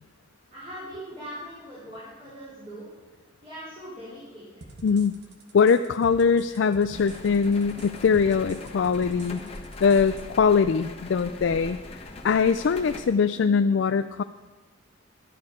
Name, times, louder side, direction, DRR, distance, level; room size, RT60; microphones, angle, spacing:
voice 1, 0.5-2.9 3.4-4.5, equal, 30° right, -12 dB, 4.6 m, -40 dB
sound 1, 4.6-10.2, right 2 dB, 60° right, 1.4 m, -46 dB
voice 2, 4.8-5.2 5.5-14.2, left 5 dB, 70° left, 10 dB, 0.4 m, -22 dB
sound 2, 6.9-13.0, left 2 dB, 30° left, 1.3 m, -41 dB
13.5 x 10.5 x 5.1 m, 1.3 s
head